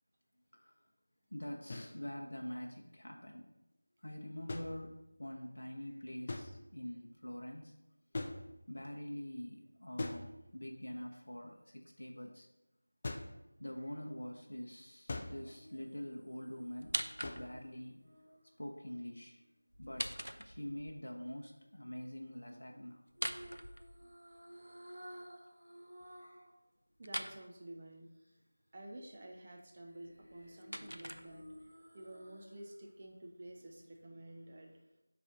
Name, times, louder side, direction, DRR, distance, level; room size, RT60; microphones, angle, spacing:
voice 1, 1.3-3.5 4.0-7.7 8.7-12.5 13.6-18.1 18.6-19.4 19.8-23.0 26.2-26.4, left 1 dB, 60° left, 1 dB, 0.6 m, -45 dB
sound 1, 1.7-2.0 4.5-5.3 6.3-6.9 8.1-8.9 10.0-10.8 13.0-13.5 15.1-15.6 17.2-17.7 20.0-20.2, left 2 dB, 25° left, 0.4 m, -43 dB
sound 2, 15.3-19.6 23.2-26.5 26.9-27.0 29.8-32.7 33.1-33.2, equal, 60° right, 1.2 m, -56 dB
sound 3, 16.8-17.7 19.7-20.9 23.1-24.4 27.0-27.4 30.1-31.7, equal, 85° right, 0.5 m, -42 dB
voice 2, 27.0-28.1 28.7-34.8, right 1 dB, 25° right, 1 dB, 0.6 m, -51 dB
6.2 x 3.3 x 5.0 m, 0.96 s
figure-of-eight pair, 170°, 0 cm